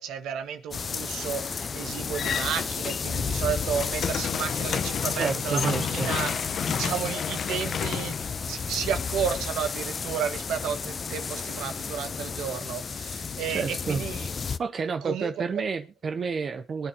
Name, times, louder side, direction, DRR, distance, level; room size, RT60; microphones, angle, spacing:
voice 1, 0.0-6.3 6.6-14.3 15.0-15.3, right 8 dB, 85° right, 1.5 m, -32 dB
sound 1, 0.7-14.6, left 5 dB, 40° left, 0.6 m, -32 dB
sound 2, 2.1-3.3 3.6-9.0, left 7 dB, 60° left, 0.9 m, -31 dB
voice 2, 5.1-6.1 13.5-14.1 14.6-16.9, right 5 dB, 45° right, 0.8 m, -30 dB
23.0 x 8.8 x 2.9 m
cardioid pair, 90°, 0 cm